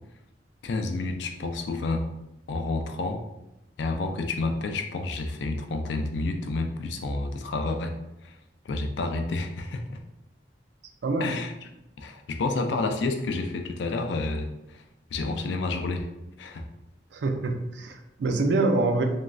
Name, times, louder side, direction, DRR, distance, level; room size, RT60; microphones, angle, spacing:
voice 1, 0.6-2.0 2.5-3.2 3.8-7.9 8.2-8.3 8.7-10.0 11.2-11.5 12.0-14.8 15.1-16.1 16.4-16.6, left 3 dB, 80° left, 5 dB, 0.4 m, -29 dB
voice 2, 11.0-11.4 17.1-19.0, right 3 dB, 75° right, 5 dB, 0.4 m, -25 dB
3.0 x 2.5 x 2.3 m, 0.90 s
head